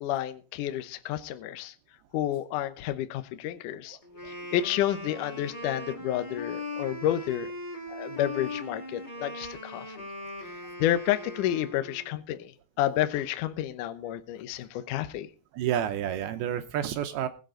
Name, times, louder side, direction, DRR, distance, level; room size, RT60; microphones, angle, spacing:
voice 1, 0.0-1.7 2.1-4.0 4.3-7.5 7.9-9.9 10.8-12.5 12.8-15.3, left 12 dB, 80° left, 10 dB, 1.9 m, -30 dB
Wind instrument woodwind instrument, 4.0-12.2, left 1 dB, 45° left, 0.5 m, -39 dB
voice 2, 15.5-17.3, right 10 dB, 75° right, 8 dB, 2.5 m, -29 dB
20.5 x 8.0 x 3.8 m, 0.35 s
omnidirectional pair, 5.0 m